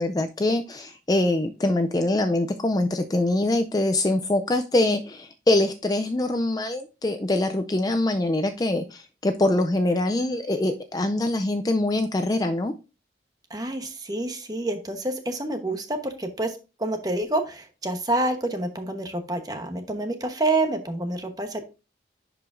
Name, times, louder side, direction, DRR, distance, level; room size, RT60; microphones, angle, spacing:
voice 1, 0.0-12.7, left 1 dB, 20° left, 7 dB, 0.4 m, -24 dB
voice 2, 13.5-21.6, right 2 dB, 20° right, 6 dB, 1.0 m, -28 dB
10.5 x 4.8 x 2.5 m, 0.30 s
head